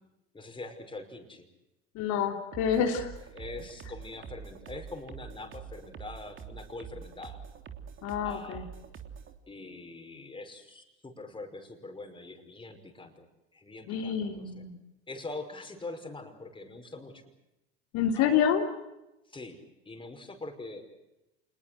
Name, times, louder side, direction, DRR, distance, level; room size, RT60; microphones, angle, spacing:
voice 1, 0.3-1.5 3.3-7.4 8.2-8.7 9.5-13.3 13.5-14.5 15.1-17.2 18.2-18.5 19.3-19.6 19.9-20.9, left 2 dB, 15° left, 5 dB, 5.6 m, -43 dB
voice 2, 1.9-3.1 8.0-8.7 13.9-14.8 17.9-18.7, left 8 dB, 60° left, 3 dB, 3.3 m, -28 dB
sound 1, 2.5-9.3, right 7 dB, 40° right, 3.2 m, -45 dB
27.0 x 21.0 x 7.9 m, 0.94 s
hypercardioid pair, 85°, 32 cm